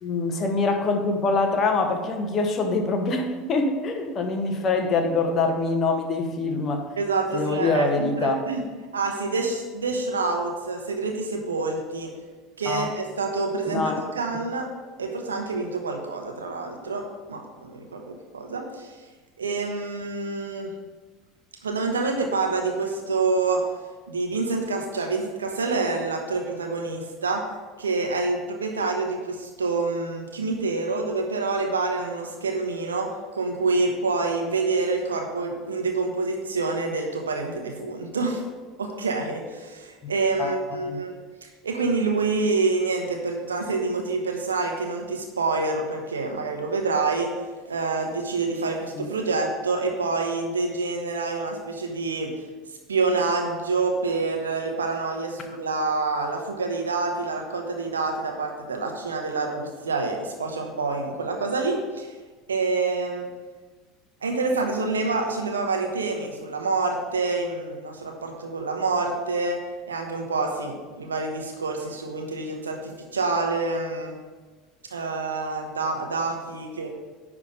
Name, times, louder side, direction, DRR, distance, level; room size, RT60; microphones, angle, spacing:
voice 1, 0.0-6.8 7.3-8.4 12.6-12.9 13.7-14.0 40.0-40.1 40.4-41.0 48.9-49.1, left 3 dB, 35° left, 4 dB, 1.0 m, -24 dB
voice 2, 7.0-8.6 8.9-12.1 12.6-14.7 15.0-19.0 19.4-20.7 21.6-23.6 24.1-27.4 27.8-38.4 38.8-41.1 41.4-47.3 47.7-52.3 52.9-62.1 62.5-63.3 64.2-69.6 69.9-74.2 74.9-76.9, right 3 dB, 80° right, 2 dB, 1.1 m, -27 dB
10.0 x 3.7 x 5.2 m, 1.3 s
figure-of-eight pair, 70°, 0 cm